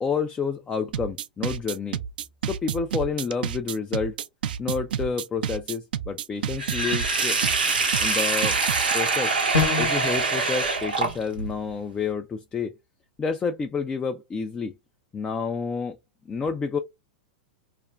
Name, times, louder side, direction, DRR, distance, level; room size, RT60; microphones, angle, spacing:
voice 1, 0.0-2.0 2.4-4.2 4.6-7.4 8.0-8.6 8.9-9.3 9.8-12.7 13.2-14.7 15.1-16.0 16.3-16.8, left 5 dB, 20° left, 0.3 m, -29 dB
sound 1, 0.9-8.9, right 9 dB, 70° right, 0.4 m, -30 dB
Sink (filling or washing), 6.6-11.5, right 4 dB, 90° right, 0.8 m, -24 dB
sound 2, 9.5-10.1, left 5 dB, 70° left, 0.8 m, -24 dB
2.4 x 2.2 x 3.0 m
hypercardioid pair, 105°, 5 cm